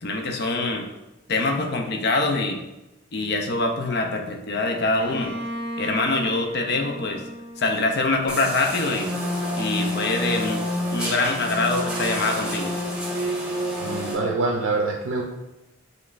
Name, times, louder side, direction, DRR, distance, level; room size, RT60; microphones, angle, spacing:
voice 1, 0.0-0.9 1.3-2.6 3.1-5.3 5.8-7.2 7.6-9.1 9.6-10.6 10.9-12.7, left 2 dB, 50° left, 3 dB, 0.5 m, -24 dB
Bowed string instrument, 5.0-8.7, equal, 25° left, 0.9 m, -35 dB
sound 1, 8.3-14.1, equal, 5° right, 0.7 m, -28 dB
voice 2, 13.8-15.2, right 3 dB, 70° right, -1 dB, 0.5 m, -25 dB
5.1 x 3.1 x 2.5 m, 0.97 s
head